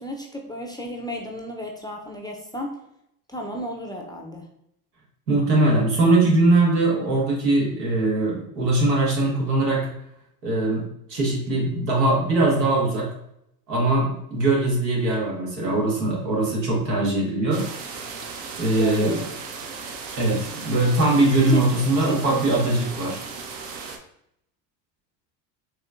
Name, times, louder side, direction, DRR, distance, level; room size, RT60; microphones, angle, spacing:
voice 1, 0.0-2.8 3.3-4.5 18.8-19.2 21.3-21.6 22.1-22.4, left 1 dB, 10° left, 0 dB, 0.4 m, -32 dB
voice 2, 5.3-9.9 10.4-10.8 11.1-13.1 13.7-17.6 18.6-19.2 20.2-23.2, right 2 dB, 90° right, -3 dB, 1.4 m, -21 dB
sound 1, 17.5-24.0, right 5 dB, 60° right, 0.8 m, -36 dB
4.3 x 3.0 x 2.4 m, 0.78 s
hypercardioid pair, 80°, 48 cm